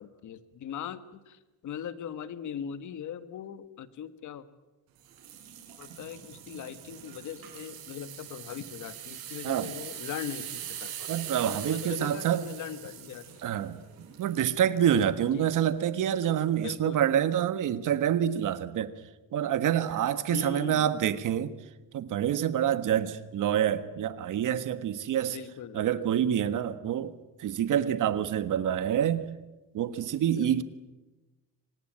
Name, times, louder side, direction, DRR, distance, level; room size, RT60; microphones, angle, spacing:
voice 1, 0.0-4.4 5.8-11.1 11.4-13.2 15.3-15.5 16.6-17.0 20.3-20.9 25.3-26.1 30.3-30.6, left 9 dB, 55° left, 1.6 m, -40 dB
sound 1, 5.0-14.9 15.5-15.7 16.2-16.3, right 10 dB, 90° right, 6.7 m, -43 dB
voice 2, 11.1-12.5 13.4-13.8 14.2-18.9 19.3-21.5 21.9-25.4 25.7-27.1 27.4-29.2 29.7-30.6, right 10 dB, 60° right, 1.5 m, -27 dB
25.5 x 19.5 x 9.0 m
cardioid pair, 145°, 35 cm